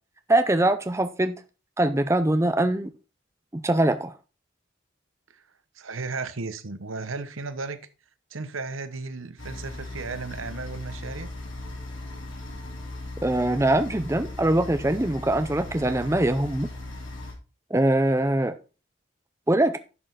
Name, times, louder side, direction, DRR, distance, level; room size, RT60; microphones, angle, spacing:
voice 1, 0.3-1.3 1.8-2.9 3.5-4.1 13.2-16.7 17.7-18.6 19.5-19.8, right 1 dB, 15° right, 0.5 m, -22 dB
voice 2, 5.8-7.8 8.3-11.3, right 3 dB, 85° right, 1.1 m, -35 dB
sound 1, 9.4-17.3, left 1 dB, 75° left, 3.0 m, -38 dB
11.0 x 6.5 x 3.9 m
head